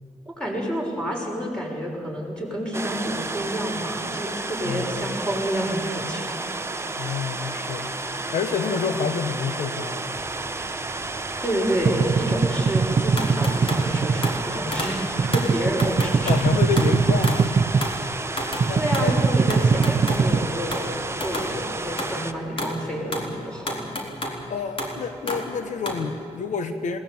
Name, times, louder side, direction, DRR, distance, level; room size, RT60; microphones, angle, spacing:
voice 1, 0.3-6.3 7.4-8.3 11.4-15.0 15.3-16.3 18.7-23.9, equal, 5° left, -2 dB, 6.5 m, -29 dB
sound 1, 2.7-22.3, right 3 dB, 20° right, 1.0 m, -32 dB
voice 2, 4.6-5.1 7.0-7.9 8.3-10.1 16.3-17.6 18.7-19.1 24.5-27.0, left 6 dB, 80° left, 9 dB, 1.2 m, -28 dB
sound 2, 10.2-11.4 11.7-18.0 18.3-21.3, right 5 dB, 45° right, 0.8 m, -22 dB
sound 3, 13.2-13.9 14.2-14.4 14.7-15.1 15.3-16.5 16.8-17.5 17.8-18.0 18.4-18.7 18.9-20.3 20.7-20.9 21.2-21.5 21.9-22.2 22.6-22.8 23.0-24.4 24.8-26.1, left 1 dB, 45° left, 3.9 m, -31 dB
20.5 x 18.5 x 8.8 m, 2.5 s
cardioid pair, 85°, 12 cm